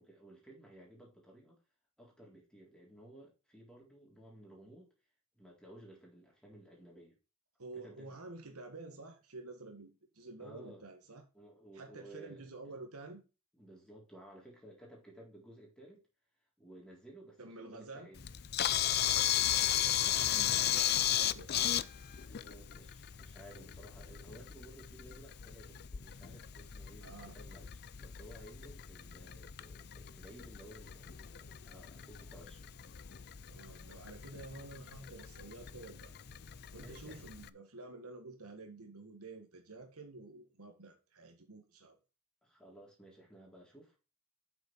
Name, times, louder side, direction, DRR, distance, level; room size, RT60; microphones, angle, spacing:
voice 1, 0.0-1.6 2.0-4.9 5.3-7.2 7.8-8.2 10.4-10.8 11.3-12.8 13.6-16.0 16.6-18.2 20.1-20.6 22.3-32.7 36.7-37.2 42.4-44.0, right 1 dB, 5° left, 3.8 m, -56 dB
voice 2, 7.6-11.2 11.7-13.2 17.4-18.1 20.0-21.7 27.0-27.4 33.5-36.1 36.7-42.0, right 3 dB, 90° right, 1.8 m, -50 dB
Camera, 18.2-37.5, left 12 dB, 50° left, 0.5 m, -36 dB
8.1 x 6.7 x 4.6 m
head